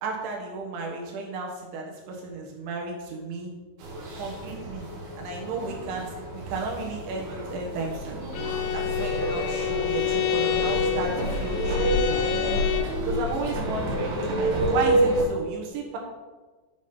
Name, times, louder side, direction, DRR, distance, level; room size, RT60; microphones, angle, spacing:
voice 1, 0.0-3.5 4.2-4.9 5.2-8.2 8.7-11.1 11.4-12.3 13.0-16.0, right 4 dB, 80° right, -1 dB, 3.8 m, -33 dB
sound 1, 3.8-15.2, right 1 dB, 65° right, 3.2 m, -28 dB
Bowed string instrument, 8.3-13.0, left 12 dB, 80° left, 2.8 m, -28 dB
sound 2, 8.9-14.8, equal, 5° left, 1.0 m, -44 dB
7.5 x 7.2 x 5.4 m, 1.3 s
omnidirectional pair, 5.3 m